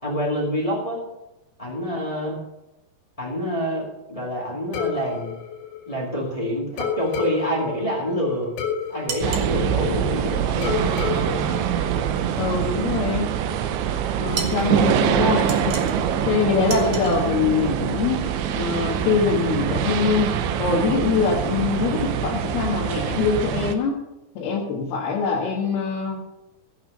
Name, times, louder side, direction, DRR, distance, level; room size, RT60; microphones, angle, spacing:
voice 1, 0.0-1.0 1.6-2.4 3.2-5.3 5.9-8.5 8.9-11.0, equal, 40° left, -3 dB, 0.5 m, -27 dB
sound 1, 4.7-6.3 6.8-10.2 10.6-12.6, left 7 dB, 90° left, 4.4 m, -31 dB
sound 2, 9.1-9.5 14.3-14.7 15.5-16.1 16.7-17.2, right 5 dB, 60° right, 1.5 m, -32 dB
sound 3, 9.2-23.8, right 9 dB, 90° right, 3.2 m, -24 dB
voice 2, 12.4-13.3 14.2-15.8 16.3-18.2 18.5-24.0 24.4-26.2, left 5 dB, 65° left, -4 dB, 3.3 m, -23 dB
16.0 x 6.1 x 6.6 m, 0.96 s
omnidirectional pair, 5.0 m